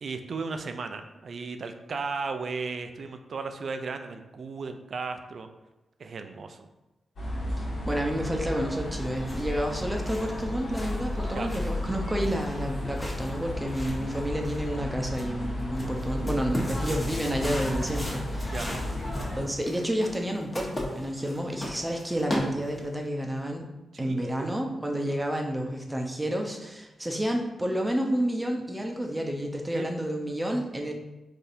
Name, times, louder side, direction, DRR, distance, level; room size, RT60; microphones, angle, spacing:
voice 1, 0.0-5.5 6.0-6.7 11.3-11.5 16.7-16.9 18.5-18.7 23.9-24.6 25.1-25.2 29.7-29.8, right 4 dB, 60° right, 7 dB, 0.3 m, -35 dB
sound 1, 7.2-19.4, left 1 dB, 65° left, 1.3 m, -33 dB
voice 2, 7.6-18.6 19.4-23.7 24.0-30.9, equal, 15° right, 2 dB, 0.7 m, -30 dB
sound 2, 8.9-23.0, equal, 30° left, 1.2 m, -38 dB
3.9 x 2.7 x 2.6 m, 1.0 s
supercardioid pair, 45°, 0 cm